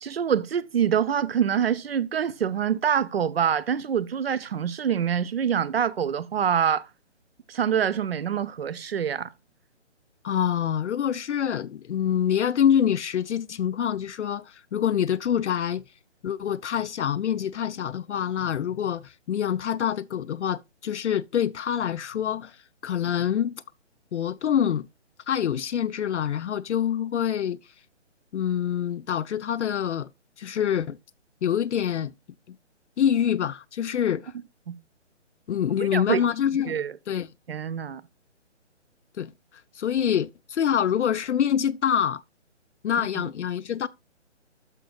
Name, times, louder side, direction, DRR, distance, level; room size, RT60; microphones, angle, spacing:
voice 1, 0.0-6.9 7.5-9.3 34.7-34.8 35.8-36.2 36.7-36.9 37.5-38.0 43.0-43.3, right 8 dB, 55° right, 0.6 m, -25 dB
voice 2, 10.2-15.8 16.2-22.6 22.8-23.6 24.1-24.9 25.3-27.6 28.3-30.1 30.4-31.0 31.4-32.1 33.0-34.3 35.5-36.8 37.1-37.3 39.2-39.3 39.7-42.2 42.8-43.9, left 9 dB, 70° left, 0.5 m, -26 dB
13.0 x 5.3 x 2.4 m
hypercardioid pair, 165°, 36 cm